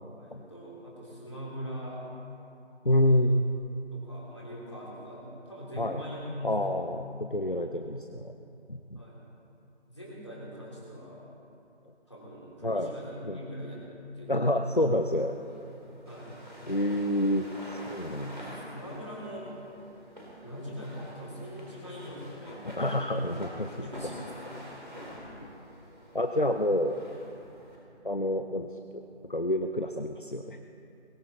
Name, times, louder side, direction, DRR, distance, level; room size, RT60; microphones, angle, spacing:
voice 1, 0.1-2.0 3.1-3.3 3.9-6.8 8.9-9.2 9.9-11.2 12.1-13.8 14.1-14.4 16.1-16.3 18.2-19.5 20.4-23.1 23.8-24.2, equal, 25° left, -5 dB, 3.4 m, -42 dB
voice 2, 2.8-3.4 5.8-6.0 6.4-8.3 8.7-9.0 12.6-12.9 13.2-13.4 14.3-15.3 16.6-17.5 17.9-18.6 22.6-23.7 26.1-27.0 28.0-30.6, left 1 dB, 50° left, 6 dB, 0.8 m, -28 dB
sound 1, 15.0-27.8, equal, 45° right, 4.1 m, -47 dB
22.5 x 13.5 x 4.1 m, 2.8 s
figure-of-eight pair, 180°, 34 cm